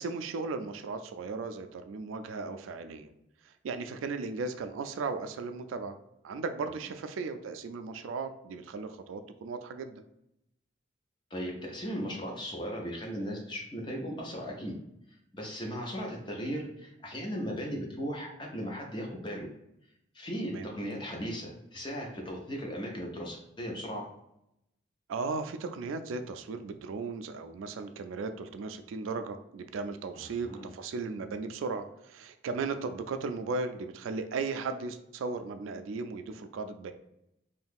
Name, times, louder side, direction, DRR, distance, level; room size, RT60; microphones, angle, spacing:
voice 1, 0.0-3.1 3.5-6.0 6.2-10.0 20.5-20.7 25.1-36.9, right 4 dB, 85° right, 8 dB, 0.3 m, -36 dB
voice 2, 11.3-14.8 15.3-19.5 20.1-24.0 30.1-30.7, equal, 25° left, 0 dB, 0.6 m, -37 dB
2.7 x 2.3 x 3.5 m, 0.82 s
head